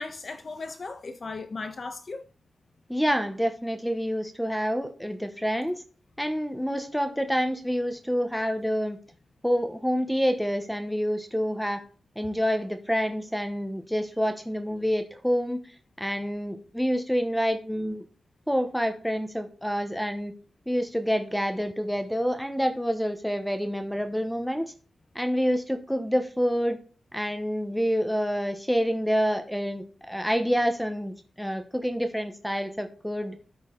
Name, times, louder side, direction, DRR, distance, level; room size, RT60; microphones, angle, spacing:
voice 1, 0.0-2.2, left 3 dB, 45° left, 1.2 m, -36 dB
voice 2, 2.9-5.8 6.2-9.0 9.4-11.8 12.2-15.6 16.0-18.0 18.5-20.3 20.7-24.7 25.1-26.8 27.1-33.3, equal, ahead, 0.9 m, -27 dB
12.5 x 4.7 x 3.9 m
wide cardioid pair, 120°, 0 cm